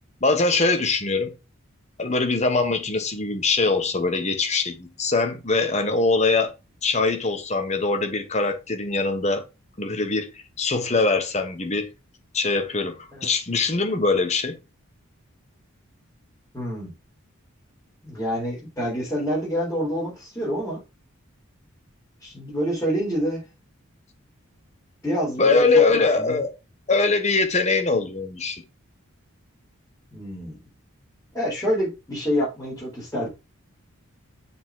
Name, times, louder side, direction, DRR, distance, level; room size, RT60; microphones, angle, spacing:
voice 1, 0.2-1.3 2.0-6.5 6.8-9.4 9.8-11.9 12.3-14.6 25.4-26.5 26.9-28.6, left 3 dB, 30° left, 1.2 m, -22 dB
voice 2, 16.5-16.9 18.0-20.8 22.2-23.4 25.0-25.8 26.2-26.4 30.1-30.6 31.3-33.3, equal, 10° left, 4.2 m, -27 dB
6.8 x 4.5 x 4.8 m
head